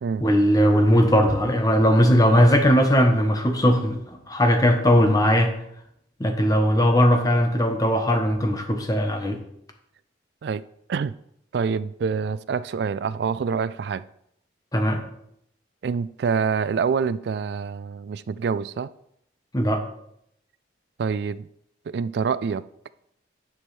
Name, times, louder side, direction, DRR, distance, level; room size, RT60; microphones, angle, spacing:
voice 1, 0.2-4.0 4.3-5.5 6.2-9.4 14.7-15.0 19.5-19.8, equal, 20° left, 0.9 m, -19 dB
voice 2, 11.5-14.0 15.8-18.9 21.0-21.5 21.9-22.6, right 5 dB, 60° right, 0.3 m, -26 dB
10.0 x 6.2 x 3.2 m
head